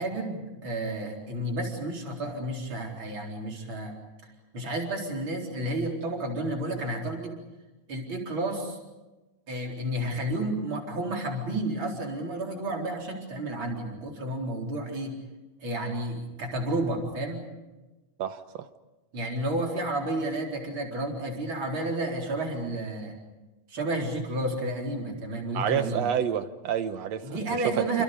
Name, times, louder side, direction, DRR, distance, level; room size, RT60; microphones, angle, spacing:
voice 1, 0.0-3.9 4.5-7.4 7.9-8.8 9.5-15.2 15.6-17.5 19.1-23.1 23.7-26.0 27.2-28.0, right 1 dB, 40° right, 1 dB, 5.0 m, -31 dB
voice 2, 25.5-27.6 27.9-28.0, right 9 dB, 65° right, 10 dB, 2.1 m, -29 dB
28.5 x 28.5 x 5.2 m, 1.1 s
omnidirectional pair, 3.3 m